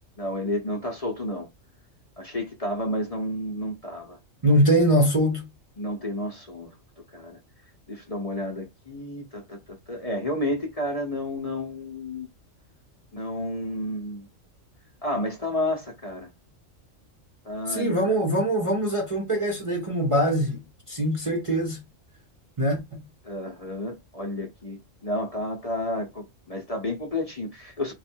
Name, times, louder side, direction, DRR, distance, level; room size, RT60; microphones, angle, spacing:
voice 1, 0.2-1.5 2.2-4.2 5.8-6.7 7.1-7.4 7.9-12.3 13.1-14.3 15.0-16.3 17.4-18.2 23.2-24.8 25.0-27.9, left 1 dB, 35° left, 0.8 m, -31 dB
voice 2, 4.4-5.5 17.7-21.8 22.6-23.0, equal, 30° right, 0.7 m, -23 dB
3.2 x 2.4 x 4.4 m
omnidirectional pair, 1.3 m